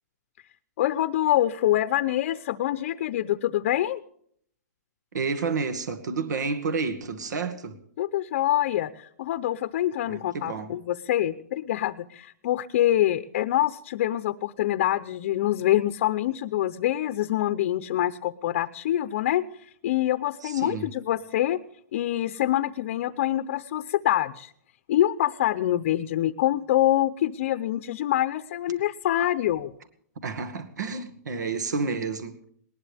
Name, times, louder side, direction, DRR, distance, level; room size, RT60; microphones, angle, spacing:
voice 1, 0.8-4.0 8.0-19.4 19.8-21.6 21.9-24.5 24.9-29.7, left 13 dB, 40° left, 0.7 m, -25 dB
voice 2, 5.1-7.8 10.1-10.7 20.4-20.9 30.2-32.4, right 4 dB, 80° right, 2.1 m, -30 dB
20.0 x 19.0 x 3.5 m
hypercardioid pair, 165°, 9 cm